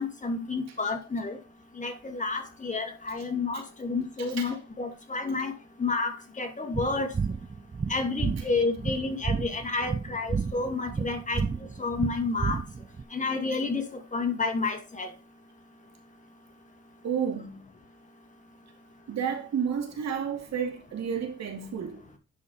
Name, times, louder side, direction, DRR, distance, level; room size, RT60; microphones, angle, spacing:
voice 1, 0.0-1.4 1.8-7.1 7.9-11.5 11.8-12.6 13.1-15.1, left 3 dB, 25° left, 2.3 m, -30 dB
voice 2, 4.2-4.6 17.0-17.6 19.1-22.0, right 7 dB, 60° right, 2.5 m, -31 dB
sound 1, 6.7-13.0, right 5 dB, 20° right, 0.5 m, -31 dB
11.0 x 5.0 x 4.3 m
cardioid pair, 90°, 30 cm